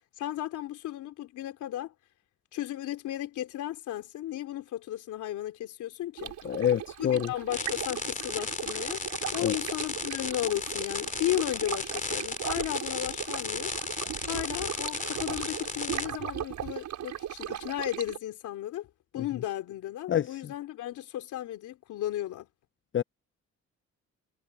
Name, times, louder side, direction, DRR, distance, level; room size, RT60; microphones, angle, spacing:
voice 1, 0.2-1.9 2.5-6.3 7.0-9.0 9.3-13.7 14.2-18.9 19.1-22.5, left 13 dB, 90° left, 3.4 m, -34 dB
Stream, 6.2-18.2, right 10 dB, 75° right, 5.3 m, -38 dB
voice 2, 6.4-7.3 9.4-9.5 20.1-20.3 22.9-23.0, left 10 dB, 40° left, 0.6 m, -26 dB
sound 1, 7.5-16.1, left 4 dB, 25° left, 3.3 m, -35 dB
cardioid pair, 90°, 29 cm